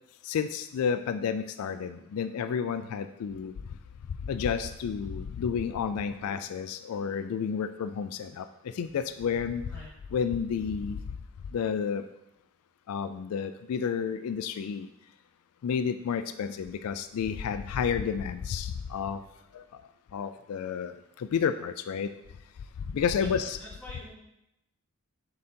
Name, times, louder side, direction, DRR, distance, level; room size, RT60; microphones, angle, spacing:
voice 1, 0.3-3.5 4.3-8.4 8.8-9.6 10.1-11.0 11.5-12.0 12.9-14.9 15.6-19.2 19.5-19.6 20.1-20.9 21.3-22.1 22.9-23.6, left 7 dB, 80° left, 10 dB, 0.3 m, -30 dB
voice 2, 23.1-24.2, equal, 5° left, -10 dB, 2.6 m, -46 dB
7.1 x 3.9 x 4.3 m, 0.85 s
head